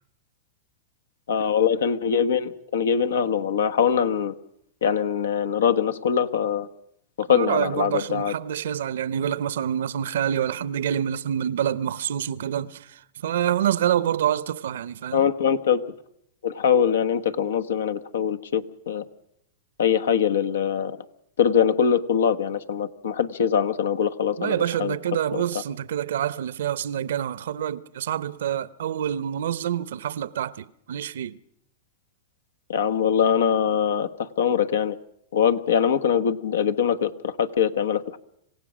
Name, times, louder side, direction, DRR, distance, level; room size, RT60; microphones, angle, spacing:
voice 1, 1.3-4.3 4.8-6.7 7.2-8.3 15.1-15.8 16.4-19.0 19.8-21.0 21.4-24.9 25.3-25.4 32.7-35.0 35.3-38.2, left 7 dB, 90° left, 1.3 m, -23 dB
voice 2, 7.3-15.3 24.4-31.4, right 10 dB, 80° right, 0.8 m, -27 dB
26.5 x 16.5 x 6.2 m
hypercardioid pair, 130°, 0 cm